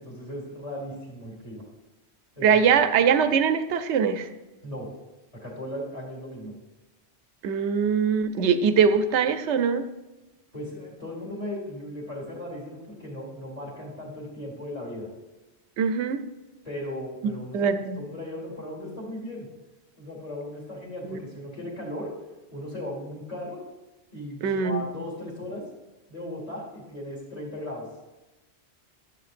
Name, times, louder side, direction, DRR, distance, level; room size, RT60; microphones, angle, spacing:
voice 1, 0.0-1.7 2.4-2.6 4.6-4.9 5.3-6.6 10.5-15.1 16.6-17.7 18.0-19.5 20.0-22.2 22.5-23.6 24.1-25.7 26.1-27.9, left 1 dB, 30° left, -6 dB, 2.3 m, -37 dB
voice 2, 2.4-4.3 7.4-9.8 15.8-16.2 17.5-18.0 21.1-21.2 24.4-24.8, right 6 dB, 80° right, 10 dB, 0.9 m, -22 dB
12.5 x 7.8 x 2.5 m, 1.1 s
omnidirectional pair, 1.2 m